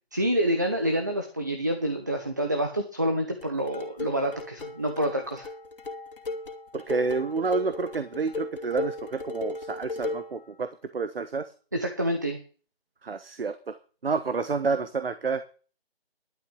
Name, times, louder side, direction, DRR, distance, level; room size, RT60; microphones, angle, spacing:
voice 1, 0.1-5.5 11.7-12.4, right 1 dB, 20° right, 5 dB, 0.7 m, -27 dB
sound 1, 3.4-10.4, left 3 dB, 55° left, 2.5 m, -36 dB
voice 2, 6.7-11.5 13.0-13.8 14.0-15.6, right 4 dB, 65° right, 11 dB, 1.3 m, -29 dB
11.5 x 6.5 x 7.7 m, 0.37 s
hypercardioid pair, 175°, 31 cm